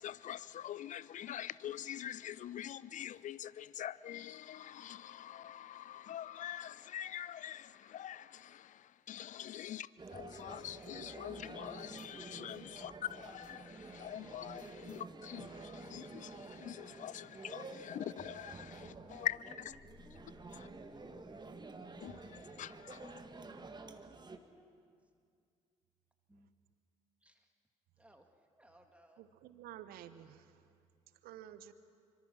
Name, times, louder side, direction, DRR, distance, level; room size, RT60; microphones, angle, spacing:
voice 1, 0.0-19.8 20.5-20.7 22.0-23.2, left 11 dB, 50° left, 0.6 m, -44 dB
sound 1, 10.0-24.4, right 3 dB, 25° right, 1.7 m, -50 dB
voice 2, 18.8-19.3 20.0-21.6 23.0-24.8 26.3-26.5 27.2-27.5 28.0-28.2 28.5-29.2, right 1 dB, 10° right, 1.9 m, -62 dB
sound 2, 19.6-23.9, left 4 dB, 35° left, 7.3 m, -66 dB
voice 3, 29.2-30.7 31.2-31.7, right 11 dB, 65° right, 1.1 m, -52 dB
25.0 x 24.5 x 6.0 m
hypercardioid pair, 50°, 17 cm